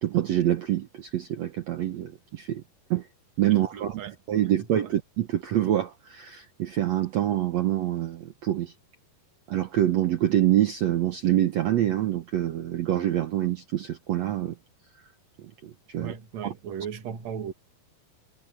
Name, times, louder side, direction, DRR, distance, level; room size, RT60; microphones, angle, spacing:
voice 1, 0.0-2.6 2.9-3.1 3.4-4.0 4.3-8.7 9.5-14.5 15.6-16.1 16.4-16.5, right 12 dB, 70° right, 1.6 m, -26 dB
voice 2, 3.5-4.2 4.6-4.9 16.0-17.5, right 7 dB, 50° right, 2.7 m, -37 dB
omnidirectional pair, 4.4 m